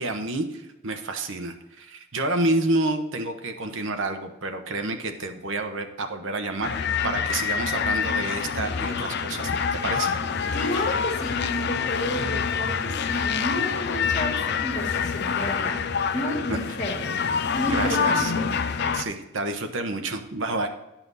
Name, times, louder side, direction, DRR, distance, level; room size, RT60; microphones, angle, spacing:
voice 1, 0.0-9.5 9.8-10.1 17.7-18.3 18.9-20.7, right 2 dB, 65° right, 6 dB, 1.0 m, -29 dB
sound 1, 6.6-19.0, left 6 dB, 55° left, 0.5 m, -26 dB
voice 2, 10.5-15.8 16.1-17.1 17.6-18.6, left 1 dB, 35° left, 1 dB, 1.8 m, -31 dB
10.5 x 5.8 x 4.1 m, 0.94 s
head